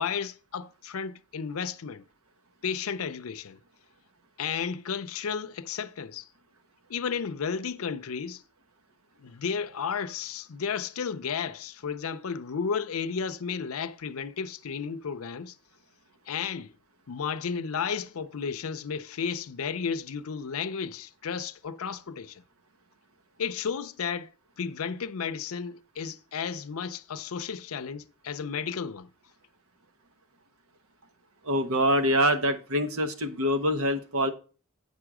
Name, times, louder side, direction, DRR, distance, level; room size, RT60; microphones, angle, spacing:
voice 1, 0.0-2.1 2.6-3.6 4.4-6.3 6.9-8.4 9.2-15.5 16.3-16.7 17.1-22.4 23.4-24.3 24.6-29.1, left 6 dB, 75° left, 0.5 m, -33 dB
voice 2, 31.4-34.3, equal, 80° right, 1.0 m, -25 dB
8.9 x 5.4 x 4.8 m
head